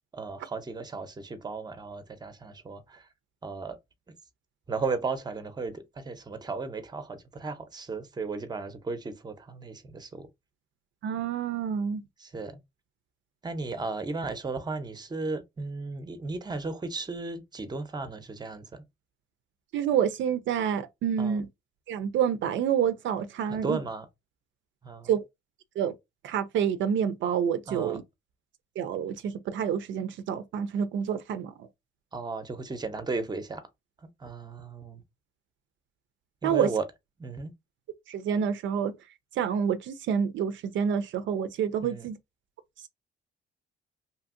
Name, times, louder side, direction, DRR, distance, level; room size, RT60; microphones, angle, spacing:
voice 1, 0.1-3.1 3.4-3.8 4.7-10.3 12.2-12.6 13.4-18.8 21.2-21.4 23.5-24.1 24.8-25.1 27.7-28.0 32.1-33.7 34.0-35.0 36.4-36.8 37.2-37.5 41.8-42.1, right 4 dB, 20° right, 0.6 m, -35 dB
voice 2, 11.0-12.0 19.7-21.5 21.9-23.8 25.1-25.2 25.8-25.9 26.2-28.0 28.8-31.5 36.4-36.7 38.1-38.9 39.4-42.2, right 8 dB, 70° right, 0.4 m, -28 dB
2.8 x 2.6 x 2.5 m
cardioid pair, 90°, 20 cm